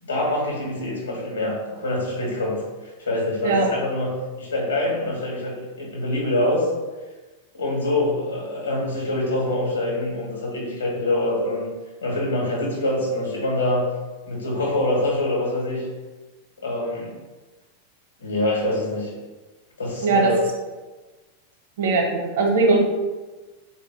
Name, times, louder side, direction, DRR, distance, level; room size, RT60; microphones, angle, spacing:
voice 1, 0.0-6.7 7.5-11.7 12.0-13.8 14.3-15.9 16.6-17.1 18.2-19.1 19.8-20.4, left 1 dB, 80° left, -4 dB, 1.2 m, -25 dB
voice 2, 21.8-22.8, right 3 dB, 55° right, 1 dB, 0.8 m, -19 dB
3.8 x 2.5 x 3.6 m, 1.3 s
figure-of-eight pair, 90°, 0 cm